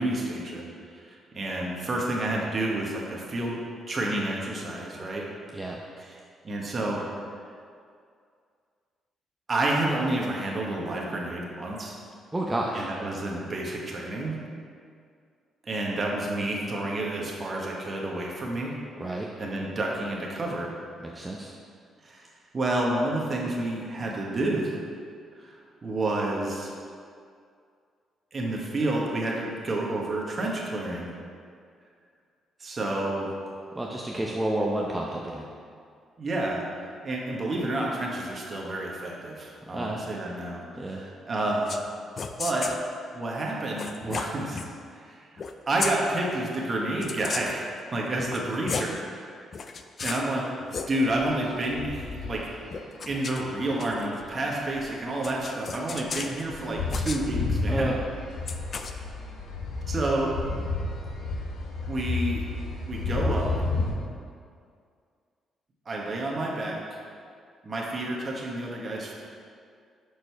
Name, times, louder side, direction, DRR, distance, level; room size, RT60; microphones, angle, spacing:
voice 1, 0.0-3.6 3.9-5.3 6.0-6.2 6.4-7.0 9.5-12.0 12.7-14.4 15.6-18.7 19.4-20.7 22.0-22.3 22.5-24.7 25.4-25.6 25.8-26.7 28.3-31.1 32.6-33.3 36.2-41.7 42.4-42.7 43.1-44.6 44.9-45.2 45.7-49.3 50.0-50.4 50.9-52.5 53.1-57.9 59.9-60.3 61.9-62.5 62.9-63.6 65.8-66.8 67.6-69.1, right 1 dB, 35° right, -3 dB, 1.4 m, -29 dB
voice 2, 12.3-12.9 19.0-19.3 21.0-21.5 33.7-35.5 39.7-40.0 40.8-41.0 57.7-57.9 58.4-58.6, right 1 dB, 15° right, -2 dB, 0.7 m, -30 dB
sound 1, 41.6-41.9 42.2-42.8 43.8-44.7 45.4-45.5 45.8-46.0 47.0-47.6 48.2-49.0 49.5-50.3 50.6-50.9 52.7-54.2 55.2-56.4 56.9-57.2 58.5-58.9, left 5 dB, 45° left, 0.5 m, -34 dB
sound 2, 51.1-52.7 53.3-53.5 54.2-54.8 55.1-55.2 55.4-55.5 55.7-63.9, left 3 dB, 85° left, 1.1 m, -31 dB
6.5 x 5.1 x 4.6 m, 2.2 s
cardioid pair, 90°, 0 cm